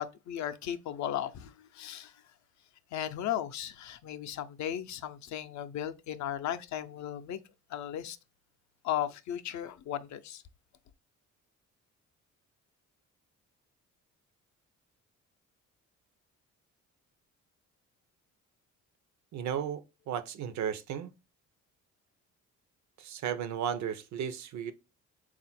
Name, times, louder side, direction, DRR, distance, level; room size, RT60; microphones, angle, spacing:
voice 1, 0.0-2.2 2.9-7.4 7.7-8.2 8.8-10.4, left 11 dB, 65° left, 0.5 m, -36 dB
voice 2, 19.3-21.1 23.0-24.7, right 8 dB, 70° right, 0.6 m, -34 dB
3.7 x 2.4 x 4.2 m
cardioid pair, 90°, 30 cm